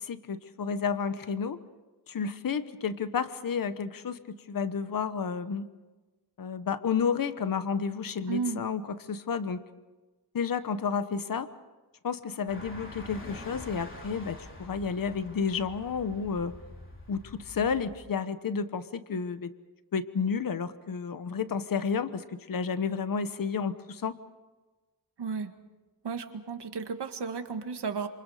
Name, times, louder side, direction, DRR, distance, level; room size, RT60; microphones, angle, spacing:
voice 1, 0.0-1.6 2.1-4.2 4.5-5.7 6.4-9.6 10.3-11.5 12.0-16.5 17.1-19.5 19.9-24.2, left 6 dB, 50° left, 11 dB, 1.2 m, -31 dB
voice 2, 8.3-8.6 25.2-25.5 26.0-28.1, right 5 dB, 70° right, 6 dB, 2.0 m, -33 dB
sound 1, 12.5-18.0, left 1 dB, 30° left, 3.8 m, -46 dB
28.0 x 27.5 x 5.0 m, 1.2 s
wide cardioid pair, 165°, 42 cm